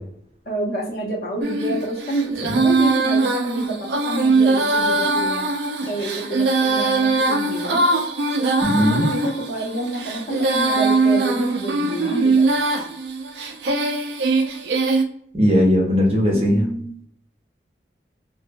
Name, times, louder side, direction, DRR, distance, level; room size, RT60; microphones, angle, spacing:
voice 1, 0.5-5.5 5.8-7.8 8.9-12.5 16.3-17.0, right 1 dB, 55° left, -1 dB, 0.7 m, -28 dB
Female singing, 1.4-15.0, right 3 dB, 80° right, 0.4 m, -21 dB
voice 2, 8.6-9.1 15.3-16.6, equal, 35° right, -2 dB, 0.7 m, -18 dB
2.6 x 2.1 x 2.6 m, 0.65 s
head